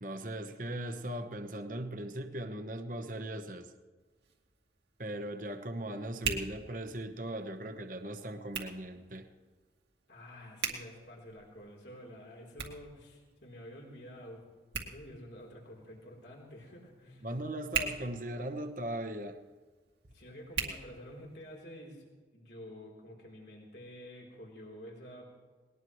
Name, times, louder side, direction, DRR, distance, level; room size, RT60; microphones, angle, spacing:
voice 1, 0.0-3.7 5.0-9.3 17.2-19.4, right 1 dB, 45° right, 7 dB, 1.1 m, -39 dB
Hands, 4.0-21.6, right 6 dB, 80° right, 2.3 m, -43 dB
voice 2, 10.1-14.4 14.8-17.3 20.1-25.3, equal, 70° left, -1 dB, 3.8 m, -49 dB
20.5 x 19.5 x 3.2 m, 1.4 s
head